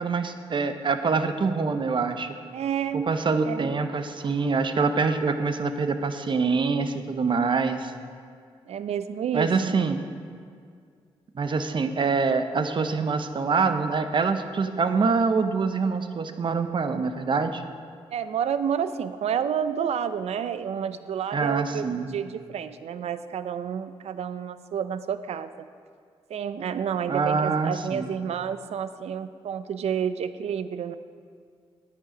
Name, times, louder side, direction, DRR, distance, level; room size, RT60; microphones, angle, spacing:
voice 1, 0.0-2.3 2.9-7.9 9.3-10.0 11.3-17.6 21.3-22.2 27.1-28.1, right 4 dB, 45° right, 9 dB, 0.8 m, -25 dB
voice 2, 2.5-3.1 3.4-3.7 8.7-9.8 18.1-25.7 26.3-30.9, right 8 dB, 70° right, 13 dB, 0.5 m, -30 dB
9.7 x 9.5 x 5.1 m, 2.2 s
cardioid pair, 60°, 11 cm